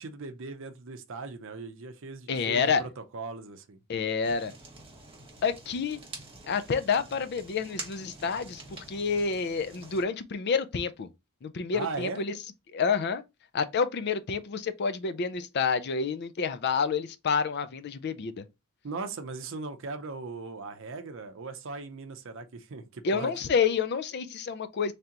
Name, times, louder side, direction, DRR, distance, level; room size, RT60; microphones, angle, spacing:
voice 1, 0.0-3.8 11.7-12.2 18.8-23.3, right 3 dB, 60° right, 0.6 m, -38 dB
voice 2, 2.3-2.8 3.9-4.5 5.4-6.0 6.5-11.1 11.4-12.3 12.7-13.2 13.5-18.4 23.0-24.9, left 5 dB, 50° left, 0.4 m, -28 dB
Fire, 4.2-10.0, right 3 dB, 25° right, 1.3 m, -46 dB
3.3 x 2.9 x 3.7 m
head